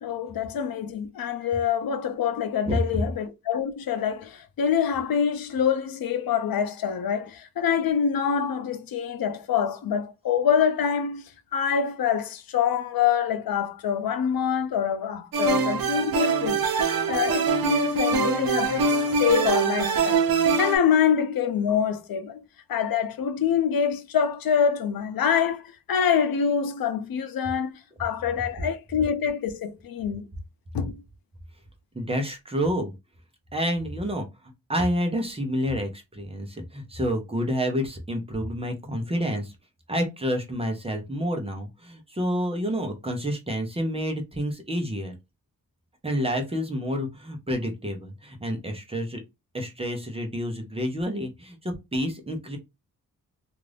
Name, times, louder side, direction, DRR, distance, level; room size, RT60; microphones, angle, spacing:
voice 1, 0.0-16.6 17.1-22.4 22.7-30.3 30.7-31.0, left 7 dB, 90° left, 0.6 m, -25 dB
sound 1, 15.3-20.8, right 4 dB, 85° right, 0.6 m, -23 dB
voice 2, 31.9-32.9 33.5-34.2 34.7-39.5 39.9-45.1 46.0-49.2 49.5-52.6, equal, 15° right, 0.6 m, -29 dB
2.5 x 2.4 x 3.3 m
wide cardioid pair, 155°, 35 cm